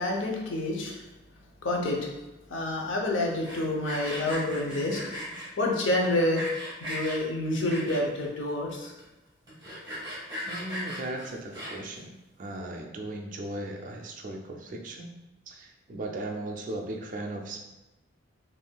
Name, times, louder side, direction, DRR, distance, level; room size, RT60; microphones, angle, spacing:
voice 1, 0.0-2.1 2.5-5.0 5.3-6.4 6.8-8.9, left 1 dB, 75° left, 0 dB, 0.6 m, -28 dB
Sawing, 3.3-5.5 6.0-7.2 7.6-8.2 8.7-8.8 9.0-9.1 9.5-12.0, equal, 20° right, 1.4 m, -37 dB
voice 2, 10.5-12.1 12.4-15.1 15.5-17.7, right 1 dB, 40° right, 1 dB, 0.3 m, -37 dB
3.5 x 2.5 x 2.2 m, 1.0 s
head